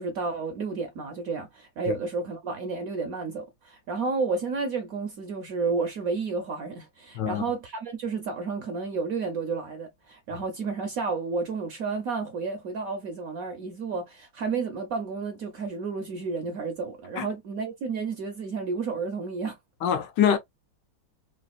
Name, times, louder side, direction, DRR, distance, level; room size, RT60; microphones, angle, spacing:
voice 1, 0.0-19.6, right 4 dB, 65° right, 0.9 m, -31 dB
voice 2, 19.8-20.4, left 8 dB, 75° left, 1.1 m, -24 dB
3.3 x 2.2 x 2.3 m
omnidirectional pair, 2.1 m